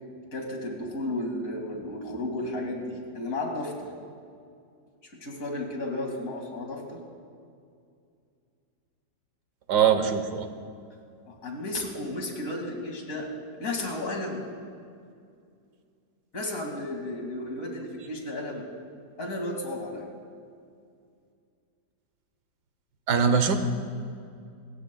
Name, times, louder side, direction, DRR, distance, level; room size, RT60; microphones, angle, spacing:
voice 1, 0.3-3.9 5.2-7.0 11.3-13.3 13.6-14.4 16.3-18.6 19.2-20.0, left 1 dB, 50° left, 1 dB, 2.6 m, -33 dB
voice 2, 9.7-10.5 23.1-23.6, right 7 dB, 75° right, 8 dB, 1.6 m, -22 dB
27.0 x 15.0 x 2.3 m, 2.4 s
omnidirectional pair, 1.8 m